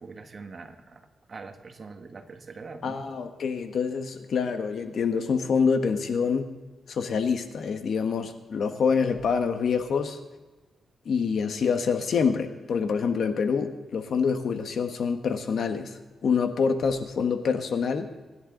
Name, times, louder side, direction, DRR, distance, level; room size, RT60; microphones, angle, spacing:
voice 1, 0.0-3.0, right 4 dB, 40° right, 5 dB, 1.6 m, -43 dB
voice 2, 2.8-6.5 6.9-10.2 11.0-18.1, left 6 dB, 65° left, 7 dB, 1.5 m, -26 dB
24.5 x 11.0 x 3.9 m, 1.3 s
cardioid pair, 110°, 0 cm